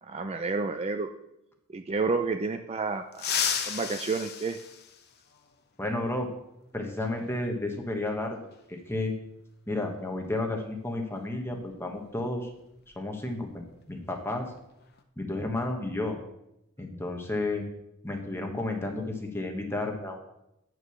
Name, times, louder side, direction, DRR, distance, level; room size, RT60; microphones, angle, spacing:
voice 1, 0.0-1.1 1.7-3.4 3.7-4.6, right 4 dB, 30° right, 7 dB, 0.4 m, -30 dB
sound 1, 3.1-5.5 7.2-7.3 8.5-8.6 10.2-10.4 10.8-11.0 11.5-13.6 13.9-14.2 14.6-15.0, left 7 dB, 50° left, 0.8 m, -34 dB
voice 2, 5.8-6.3 6.7-8.4 8.7-9.1 9.7-12.5 13.0-14.5 15.2-16.2 16.8-17.7 18.0-20.2, left 2 dB, 10° left, 2 dB, 1.1 m, -32 dB
8.8 x 4.7 x 7.0 m, 0.86 s
head